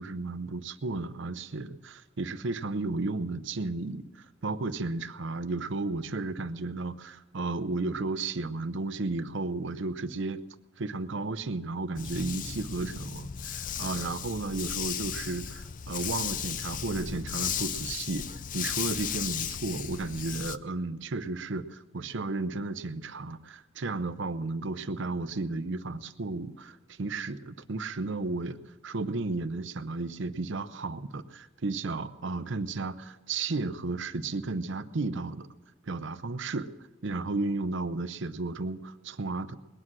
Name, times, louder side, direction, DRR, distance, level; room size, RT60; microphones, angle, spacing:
voice 1, 0.0-10.4 10.8-18.2 18.5-35.5 35.8-36.7 37.0-39.5, right 3 dB, 70° right, 12 dB, 0.7 m, -33 dB
Dog, 11.9-20.6, left 8 dB, 45° left, 0.5 m, -35 dB
20.5 x 9.9 x 6.2 m, 1.1 s
head